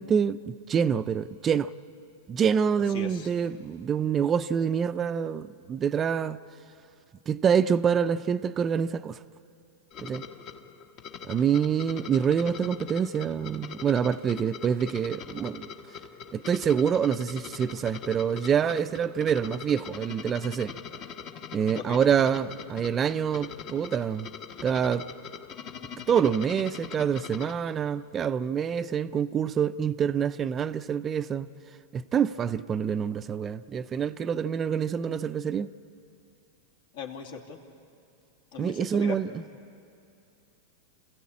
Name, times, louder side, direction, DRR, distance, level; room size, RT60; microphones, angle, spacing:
voice 1, 0.0-1.7 2.3-6.4 7.3-9.2 10.0-10.2 11.2-15.7 16.3-20.8 21.5-24.3 24.6-25.1 26.1-31.5 31.9-35.7 38.6-39.3, right 7 dB, 25° right, 0.5 m, -26 dB
voice 2, 2.9-3.3 21.8-22.0 36.9-37.6 38.5-39.2, left 7 dB, 70° left, 2.7 m, -38 dB
sound 1, 9.9-27.5, left 7 dB, 45° left, 1.3 m, -42 dB
26.5 x 16.0 x 8.6 m
hypercardioid pair, 120°, 0 cm